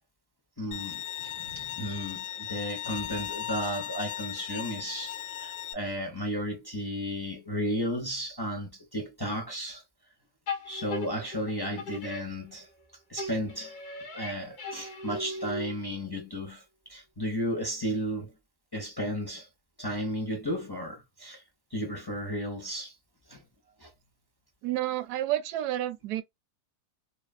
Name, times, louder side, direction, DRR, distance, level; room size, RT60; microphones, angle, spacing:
voice 1, 0.6-9.8 10.7-12.7 13.1-13.7 14.1-16.6 16.9-18.3 18.7-19.5 19.8-21.4 21.7-22.9 23.3-23.4 23.8-23.9, equal, 25° left, 0.5 m, -34 dB
Bowed string instrument, 0.7-5.7, left 11 dB, 85° left, 1.3 m, -37 dB
sound 1, 10.5-12.8 13.2-16.0, left 2 dB, 65° left, 1.4 m, -38 dB
voice 2, 24.6-26.2, right 13 dB, 75° right, 1.1 m, -30 dB
3.0 x 2.4 x 2.3 m
omnidirectional pair, 1.8 m